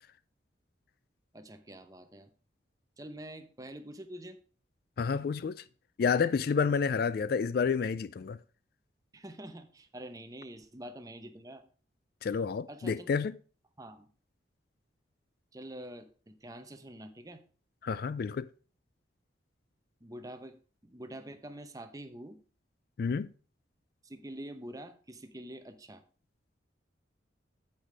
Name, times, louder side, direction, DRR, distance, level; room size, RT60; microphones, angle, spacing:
voice 1, 1.3-2.3 3.0-4.4 9.1-11.6 12.7-13.1 13.8-14.1 15.5-17.4 20.0-20.6 20.8-22.4 24.0-26.0, right 1 dB, 20° right, 0.8 m, -46 dB
voice 2, 5.0-5.6 6.0-8.4 12.2-13.4 17.8-18.5 23.0-23.3, left 5 dB, 55° left, 0.3 m, -29 dB
8.7 x 8.3 x 3.3 m
head